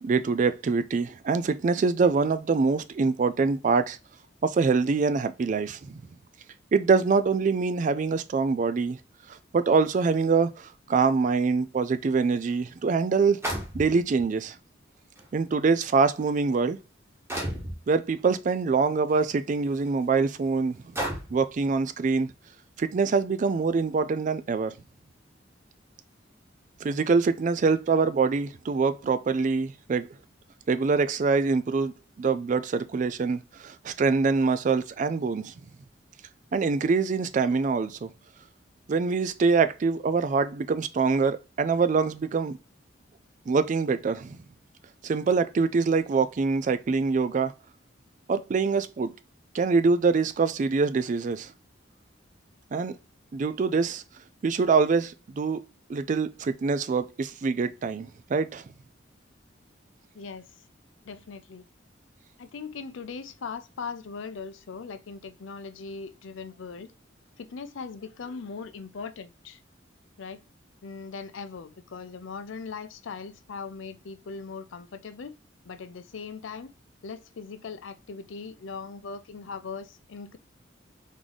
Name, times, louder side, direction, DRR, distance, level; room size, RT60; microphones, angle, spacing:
voice 1, 0.0-4.0 4.4-6.0 6.7-9.0 9.5-13.4 13.7-14.6 15.3-16.8 17.9-20.8 21.3-22.3 22.8-24.7 26.8-30.1 30.7-35.5 36.5-38.1 38.9-42.6 43.5-44.4 45.0-47.5 48.3-49.1 49.5-51.5 52.7-52.9 53.3-54.0 54.4-55.6 55.9-58.6, right 4 dB, 40° right, 0.3 m, -24 dB
dropping ten pancakes onto a plate, 12.3-12.4 13.4-14.2 15.2-15.3 16.0-16.3 17.3-17.8 19.1-19.2 19.8-19.9 21.0-21.5, right 1 dB, 15° right, 1.1 m, -32 dB
voice 2, 60.2-60.5 61.1-61.6 62.4-66.9 67.4-69.6 70.2-70.4 70.8-75.3 75.6-76.7 77.0-80.4, left 5 dB, 85° left, 0.5 m, -39 dB
3.6 x 3.1 x 4.0 m
head